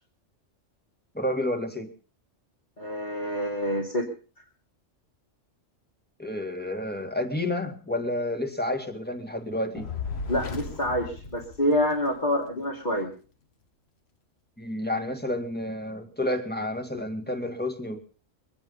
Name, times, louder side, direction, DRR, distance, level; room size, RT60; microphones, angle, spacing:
voice 1, 1.1-1.9 6.2-9.9 14.6-18.0, left 1 dB, 10° left, 4 dB, 2.1 m, -30 dB
voice 2, 2.8-4.1 10.3-13.1, equal, 35° left, -3 dB, 2.8 m, -27 dB
Fire, 9.8-12.2, left 5 dB, 55° left, 1.5 m, -35 dB
23.5 x 9.8 x 5.5 m, 0.40 s
omnidirectional pair, 1.3 m